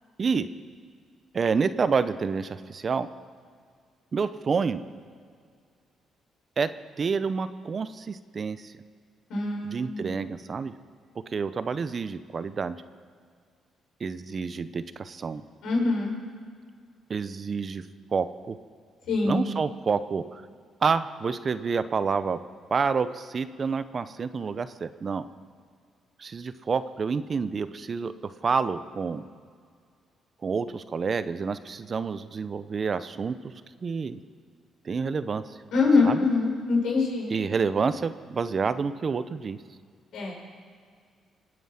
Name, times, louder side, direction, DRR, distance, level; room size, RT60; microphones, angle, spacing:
voice 1, 1.3-3.1 4.1-4.8 6.6-6.7 7.0-8.7 9.6-10.7 11.3-12.8 14.0-15.4 17.1-17.8 18.1-18.6 19.2-20.4 20.8-22.4 22.7-25.2 26.2-29.2 30.4-33.3 33.8-34.2 34.8-35.4 36.0-36.2 37.3-39.6, right 5 dB, 40° right, 13 dB, 0.7 m, -28 dB
voice 2, 9.3-10.1 15.6-16.1 19.1-19.5 35.7-37.3 40.1-40.3, left 3 dB, 75° left, -2 dB, 5.8 m, -24 dB
26.0 x 9.3 x 5.7 m, 2.1 s
cardioid pair, 90°, 0 cm